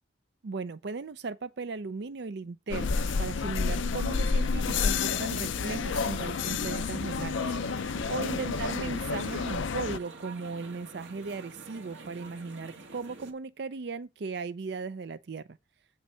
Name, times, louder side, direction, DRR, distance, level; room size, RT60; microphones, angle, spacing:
voice 1, 0.4-15.5, right 4 dB, 60° right, 0.5 m, -37 dB
sound 1, 2.7-10.0, left 5 dB, 80° left, 0.5 m, -30 dB
sound 2, 4.4-13.3, right 3 dB, 75° right, 1.7 m, -47 dB
8.6 x 5.5 x 4.3 m
head